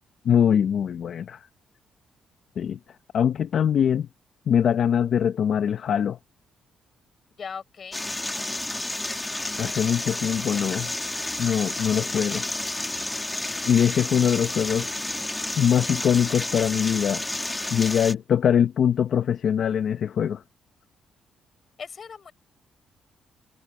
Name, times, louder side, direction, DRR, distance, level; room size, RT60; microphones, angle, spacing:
voice 1, 0.2-1.5 2.6-2.8 3.1-4.1 4.5-6.2 9.6-10.9 11.4-12.5 13.7-14.9 15.6-17.2 17.7-20.4, left 8 dB, 60° left, 0.9 m, -22 dB
voice 2, 7.4-8.0 21.8-22.3, left 6 dB, 45° left, 7.2 m, -38 dB
sound 1, 7.9-18.1, left 1 dB, 10° left, 1.9 m, -31 dB
cardioid pair, 90°, 0 cm